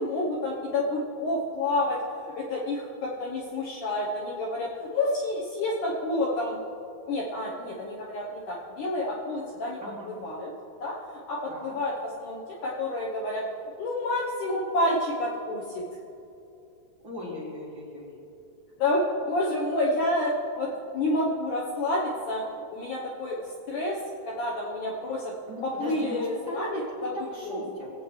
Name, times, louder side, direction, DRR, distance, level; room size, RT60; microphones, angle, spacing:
voice 1, 0.0-6.6 7.1-9.8 10.1-10.5 10.8-13.4 13.8-15.9 18.8-22.4 22.7-24.0 24.3-25.3 25.6-27.1 27.4-27.6, left 1 dB, 70° left, -3 dB, 2.0 m, -29 dB
voice 2, 9.8-10.1 11.5-11.7 17.0-18.3 25.5-27.9, left 1 dB, 40° right, -7 dB, 2.0 m, -38 dB
20.0 x 8.3 x 3.2 m, 2.8 s
omnidirectional pair, 4.5 m